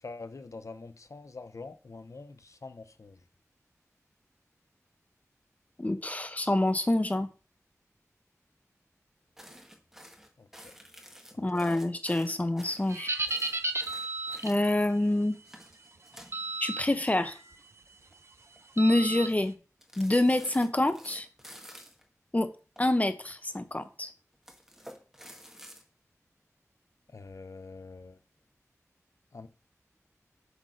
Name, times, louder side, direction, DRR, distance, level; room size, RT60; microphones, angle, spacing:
voice 1, 0.0-3.2 10.4-10.5 11.3-11.6 27.1-28.2 29.3-29.5, left 3 dB, 65° left, 0.7 m, -45 dB
voice 2, 5.8-7.3 11.4-13.1 14.4-15.4 16.6-17.4 18.8-19.5 20.0-21.3 22.3-22.5 22.8-24.1, left 1 dB, 25° left, 1.0 m, -27 dB
sound 1, 9.4-14.9 15.3-17.6 17.9-18.1 18.5-19.0 19.8-22.0 22.8-23.6 24.3-25.8, equal, 5° right, 1.6 m, -51 dB
sound 2, 12.9-14.6 16.3-16.8 17.3-17.6 18.8-19.3, right 2 dB, 50° right, 0.8 m, -33 dB
8.1 x 3.8 x 6.4 m
wide cardioid pair, 75°, 6 cm